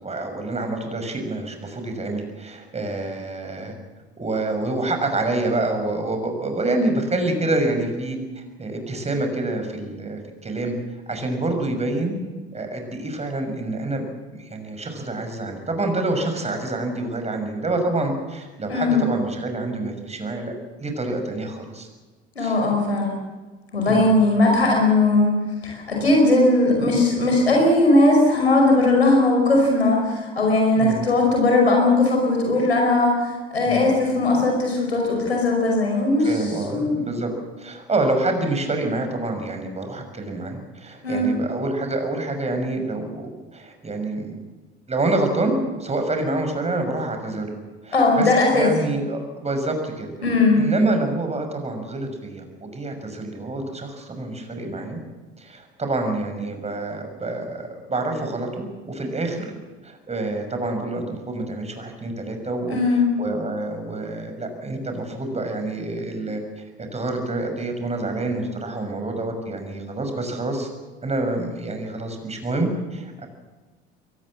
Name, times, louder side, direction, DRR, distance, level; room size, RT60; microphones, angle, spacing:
voice 1, 0.0-3.7 4.2-10.7 11.1-12.2 12.5-14.0 14.4-20.5 20.8-21.9 22.4-22.6 23.9-24.0 30.8-31.0 33.7-33.8 36.2-37.3 37.6-44.4 44.9-47.6 47.8-50.1 50.6-55.0 55.4-59.5 59.8-66.6 66.9-70.7 71.0-73.3, right 2 dB, 20° right, 5 dB, 6.1 m, -27 dB
voice 2, 18.7-19.0 22.4-23.1 23.7-25.3 25.6-36.4 36.7-36.9 41.0-41.3 47.9-48.7 50.2-50.6 62.7-63.0, left 2 dB, 85° left, 0 dB, 5.3 m, -18 dB
23.0 x 19.0 x 7.6 m, 1.2 s
figure-of-eight pair, 65°, 31 cm